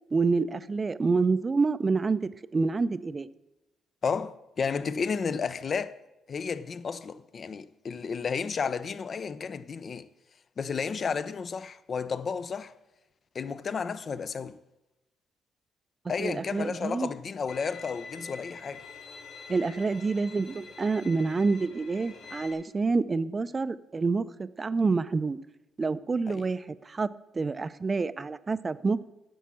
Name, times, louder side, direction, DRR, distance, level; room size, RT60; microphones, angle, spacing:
voice 1, 0.1-3.3 16.2-17.1 19.5-25.4 25.8-27.1 27.3-29.1, right 4 dB, 30° right, 0.5 m, -27 dB
voice 2, 4.0-6.0 6.3-10.1 10.6-12.7 13.3-14.6 16.1-18.8 26.3-26.4, left 5 dB, 45° left, 0.6 m, -32 dB
Bowed string instrument, 17.5-22.5, left 4 dB, 80° left, 2.3 m, -46 dB
10.0 x 7.1 x 6.2 m
cardioid pair, 90°, 0 cm